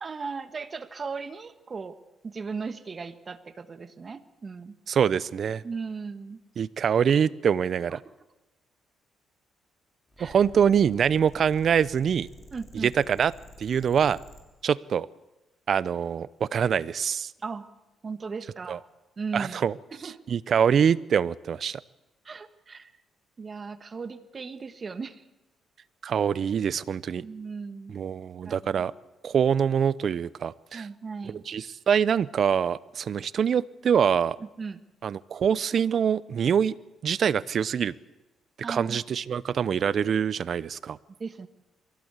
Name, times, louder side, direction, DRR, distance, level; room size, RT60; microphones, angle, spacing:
voice 1, 0.0-2.0 2.2-4.8 5.6-6.4 7.9-8.1 10.2-10.4 12.5-12.9 17.4-17.7 18.0-18.8 19.2-19.6 19.9-20.2 22.2-22.9 23.4-25.2 27.2-28.0 28.4-28.8 30.7-31.4 34.4-34.8 38.6-39.0 41.1-41.5, right 5 dB, 35° right, 11 dB, 1.4 m, -37 dB
voice 2, 4.9-5.6 6.6-8.0 10.2-12.3 12.8-13.3 13.6-14.2 14.6-15.1 15.7-17.3 18.7-18.8 19.3-19.7 20.3-21.8 26.0-27.2 27.9-28.9 29.2-30.9 31.5-34.4 35.0-36.8 37.0-37.9 38.7-41.0, right 7 dB, 55° right, 19 dB, 0.7 m, -24 dB
sound 1, 10.1-14.4, left 2 dB, 20° left, 5.7 m, -49 dB
23.5 x 17.0 x 8.2 m, 1.0 s
cardioid pair, 90°, 0 cm